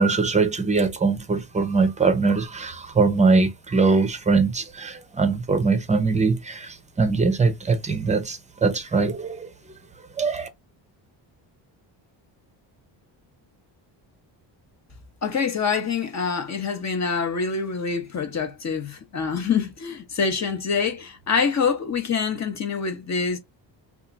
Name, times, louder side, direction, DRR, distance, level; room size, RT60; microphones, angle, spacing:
voice 1, 0.0-9.5 10.2-10.5, right 4 dB, 15° right, 0.6 m, -22 dB
voice 2, 15.2-23.4, left 5 dB, 35° left, 0.9 m, -25 dB
2.9 x 2.5 x 3.8 m
cardioid pair, 125°, 46 cm